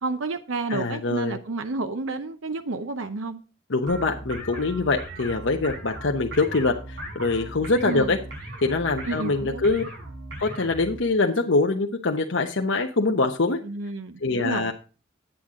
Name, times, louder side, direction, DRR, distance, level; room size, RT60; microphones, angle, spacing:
voice 1, 0.0-3.4 7.8-8.1 9.0-9.7 13.6-14.7, right 3 dB, 85° right, 0.8 m, -30 dB
voice 2, 0.7-1.4 3.7-8.2 8.6-9.8 10.4-13.6 14.2-14.7, left 3 dB, 70° left, 0.9 m, -24 dB
sound 1, 3.9-11.0, right 1 dB, 60° right, 5.7 m, -38 dB
10.0 x 8.9 x 3.7 m
head